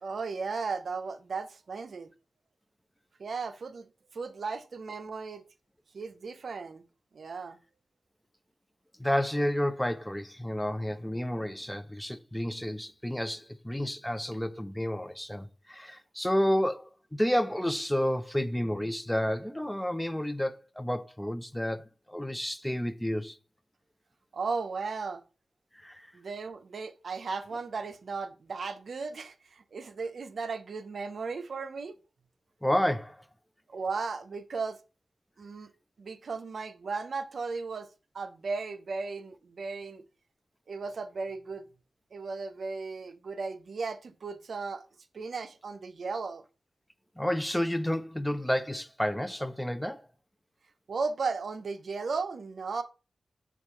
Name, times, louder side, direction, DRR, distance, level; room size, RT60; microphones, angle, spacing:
voice 1, 0.0-2.1 3.2-5.4 5.9-6.8 7.1-7.6 24.3-25.2 26.1-32.0 33.7-34.8 35.4-35.7 36.0-37.9 38.1-40.0 40.7-41.7 42.1-44.8 45.1-46.4 50.9-52.8, right 4 dB, 65° right, 0.5 m, -36 dB
voice 2, 9.0-21.8 22.1-23.4 25.8-26.1 32.6-33.2 47.2-50.0, equal, 5° left, 0.5 m, -30 dB
6.5 x 2.4 x 2.9 m
cardioid pair, 55°, 0 cm